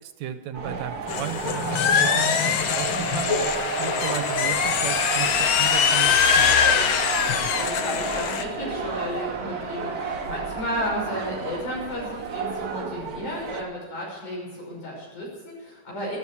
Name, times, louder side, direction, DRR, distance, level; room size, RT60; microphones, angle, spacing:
voice 1, 0.0-6.8, right 9 dB, 70° right, 9 dB, 2.1 m, -34 dB
sound 1, 0.5-13.6, right 5 dB, 55° right, 1.0 m, -31 dB
sound 2, 1.1-8.4, left 7 dB, 65° left, 1.3 m, -23 dB
sound 3, 7.1-12.2, equal, 35° left, 1.7 m, -43 dB
voice 2, 7.5-16.2, equal, 80° left, -2 dB, 7.5 m, -33 dB
13.5 x 12.5 x 7.1 m, 1.5 s
omnidirectional pair, 3.4 m